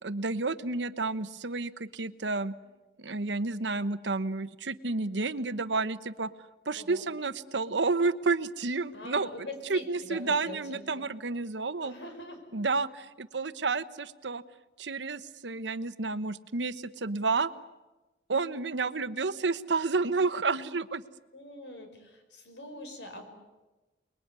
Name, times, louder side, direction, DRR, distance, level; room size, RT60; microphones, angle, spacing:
voice 1, 0.0-2.5 3.0-6.3 6.7-11.9 12.5-14.4 14.8-17.5 18.3-21.0, right 3 dB, 85° right, 14 dB, 1.1 m, -30 dB
voice 2, 8.9-11.0 11.8-12.4 21.3-23.2, left 1 dB, 85° left, 6 dB, 5.7 m, -43 dB
29.0 x 21.0 x 9.7 m, 1.1 s
head